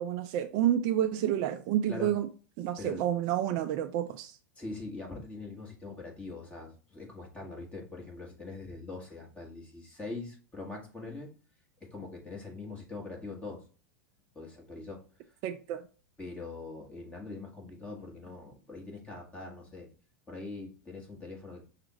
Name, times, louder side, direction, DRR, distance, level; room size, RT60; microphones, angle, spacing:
voice 1, 0.0-2.3 2.6-4.4 15.4-15.8, right 11 dB, 50° right, 0.4 m, -29 dB
voice 2, 4.6-11.3 11.9-13.6 14.3-15.0 16.2-19.9 20.3-21.6, left 3 dB, 15° left, 1.7 m, -42 dB
5.9 x 2.5 x 3.0 m
hypercardioid pair, 100°, 9 cm